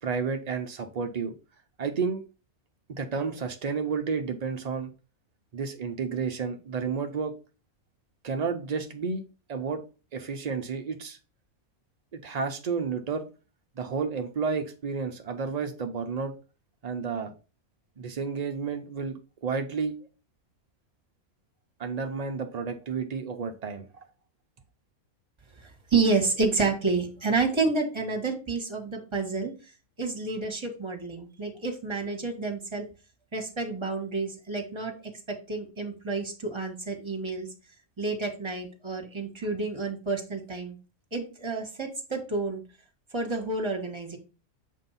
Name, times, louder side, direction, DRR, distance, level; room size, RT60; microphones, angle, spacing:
voice 1, 0.0-1.3 1.8-2.2 2.9-4.9 5.5-7.3 8.2-9.2 9.5-9.8 10.1-11.2 12.1-13.3 13.8-16.3 16.8-17.3 18.0-20.0 21.8-23.9, right 5 dB, 65° right, 5 dB, 0.4 m, -31 dB
voice 2, 25.9-29.5 30.0-32.8 33.3-34.9 35.3-37.5 38.0-40.8 41.1-42.6 43.1-44.2, right 3 dB, 20° right, 2 dB, 1.3 m, -29 dB
7.3 x 2.6 x 5.5 m, 0.34 s
omnidirectional pair, 1.5 m